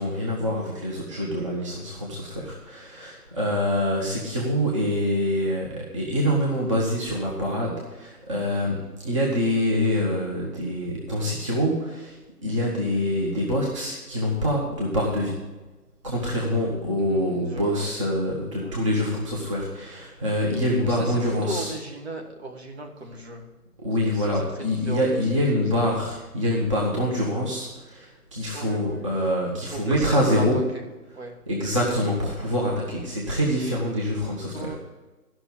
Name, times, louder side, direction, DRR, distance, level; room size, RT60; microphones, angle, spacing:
voice 1, 0.0-12.2 12.4-15.4 16.0-21.7 23.8-30.6 31.5-34.7, equal, 20° right, -4 dB, 1.2 m, -25 dB
voice 2, 17.0-17.9 18.6-18.8 20.7-23.5 24.0-25.2 25.5-25.9 28.5-29.1 29.7-30.9 31.1-31.4 34.5-34.7, right 2 dB, 40° right, 3 dB, 1.7 m, -37 dB
12.5 x 6.1 x 6.8 m, 1.2 s
figure-of-eight pair, 155°, 47 cm